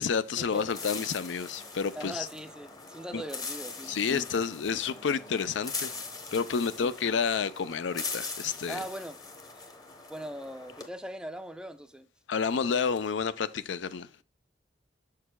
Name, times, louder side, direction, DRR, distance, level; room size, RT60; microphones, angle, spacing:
voice 1, 0.0-2.3 3.1-3.2 3.9-5.9 6.3-8.8 12.3-14.1, left 6 dB, 80° left, 0.5 m, -30 dB
sound 1, 0.5-10.9, left 4 dB, 20° left, 0.9 m, -41 dB
voice 2, 1.9-4.4 6.8-6.9 8.7-9.2 9.5-9.6 10.1-12.1, right 1 dB, 5° right, 0.4 m, -40 dB
6.9 x 6.5 x 2.2 m
head